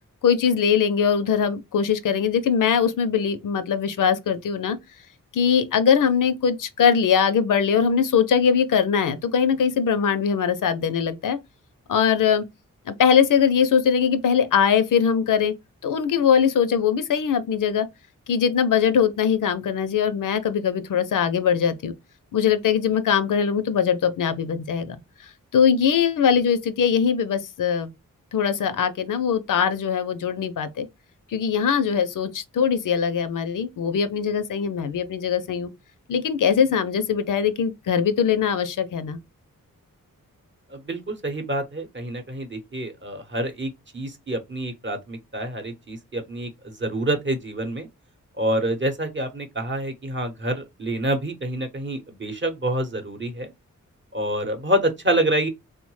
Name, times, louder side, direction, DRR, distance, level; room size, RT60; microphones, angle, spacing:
voice 1, 0.2-4.8 5.3-11.4 11.9-12.4 12.9-15.5 15.8-17.9 18.3-21.9 22.3-25.0 25.5-27.9 28.3-30.9 31.3-35.7 36.1-39.2, left 7 dB, 70° left, 0.5 m, -21 dB
voice 2, 40.7-47.9 48.4-53.5 54.1-55.5, right 1 dB, 35° right, 0.8 m, -27 dB
3.0 x 2.1 x 3.0 m
cardioid pair, 55°, 33 cm